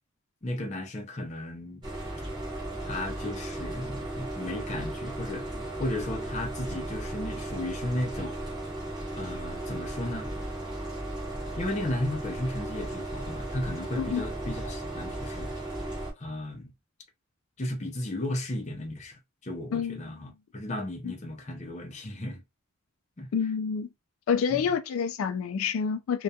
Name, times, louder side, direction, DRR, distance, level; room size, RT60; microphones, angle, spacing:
voice 1, 0.4-1.8 2.8-8.4 9.1-10.3 11.6-15.5 16.2-16.7 17.6-22.4 23.2-23.3 24.5-24.7, left 1 dB, 35° left, 0.6 m, -35 dB
sound 1, 1.8-16.1, right 1 dB, 20° right, 0.8 m, -36 dB
voice 2, 23.3-23.9 24.3-26.2, left 6 dB, 80° left, 0.3 m, -28 dB
2.3 x 2.2 x 2.6 m
head